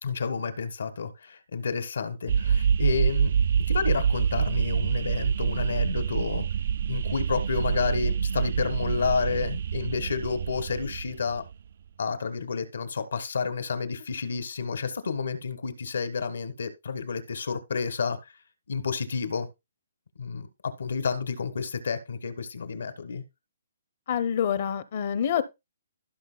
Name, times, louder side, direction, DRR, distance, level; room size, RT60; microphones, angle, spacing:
voice 1, 0.0-3.3 3.7-6.4 6.9-11.4 12.0-18.2 18.7-19.5 20.2-20.5 20.8-23.2, left 5 dB, 80° left, 1.5 m, -30 dB
sound 1, 2.3-11.5, right 7 dB, 55° right, 0.3 m, -26 dB
voice 2, 24.1-25.4, left 8 dB, 45° left, 0.7 m, -26 dB
16.0 x 5.8 x 2.3 m
hypercardioid pair, 165°, 0 cm